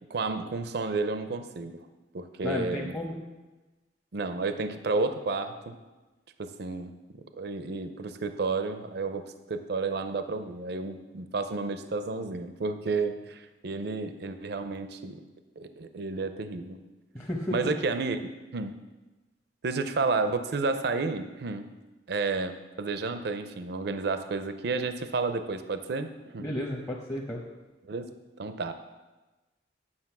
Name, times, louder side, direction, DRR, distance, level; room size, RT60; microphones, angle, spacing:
voice 1, 0.1-1.8 2.1-2.9 4.1-5.8 6.4-6.9 7.4-15.2 15.6-16.8 17.5-18.2 18.5-18.8 19.6-21.7 22.1-26.5 27.9-28.1 28.4-28.7, right 3 dB, 65° right, 9 dB, 0.6 m, -31 dB
voice 2, 2.4-3.2 17.1-17.6 26.4-27.4, left 1 dB, 15° left, -3 dB, 0.9 m, -32 dB
9.8 x 6.2 x 5.9 m, 1.2 s
head